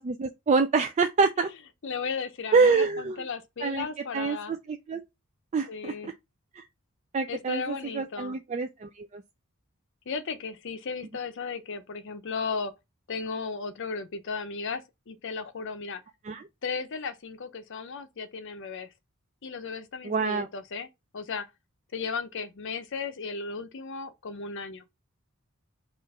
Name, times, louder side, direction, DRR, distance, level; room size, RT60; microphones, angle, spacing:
voice 1, 0.0-1.5 2.5-3.2 3.6-5.0 5.5-6.1 6.5-6.6 7.1-9.2 16.2-16.5 20.0-20.5, right 4 dB, 35° right, 0.3 m, -26 dB
voice 2, 1.8-4.6 5.7-6.1 7.3-8.4 10.1-12.7 13.1-16.0 16.6-18.9 19.4-20.9 21.1-21.5 21.9-24.9, left 5 dB, 60° left, 0.6 m, -35 dB
4.4 x 2.5 x 4.7 m
head